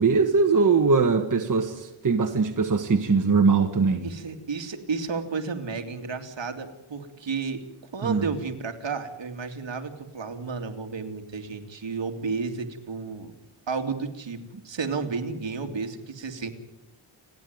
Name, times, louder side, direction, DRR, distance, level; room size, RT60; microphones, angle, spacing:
voice 1, 0.0-4.0 8.0-8.3, right 4 dB, 40° right, 4 dB, 1.5 m, -21 dB
voice 2, 4.0-7.6 7.9-13.3 13.7-14.4 14.6-16.5, right 5 dB, 65° right, 5 dB, 2.6 m, -32 dB
30.0 x 10.5 x 9.4 m, 0.97 s
wide cardioid pair, 125°, 48 cm